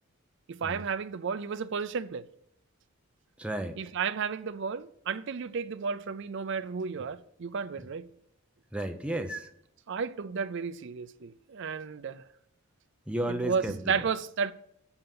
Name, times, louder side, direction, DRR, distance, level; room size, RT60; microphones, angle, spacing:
voice 1, 0.5-2.3 3.8-8.1 9.9-12.2 13.3-14.5, right 6 dB, 55° right, 0.4 m, -33 dB
voice 2, 3.4-3.8 8.7-9.5 13.1-13.8, right 1 dB, 5° right, 0.7 m, -32 dB
7.8 x 7.2 x 7.6 m
head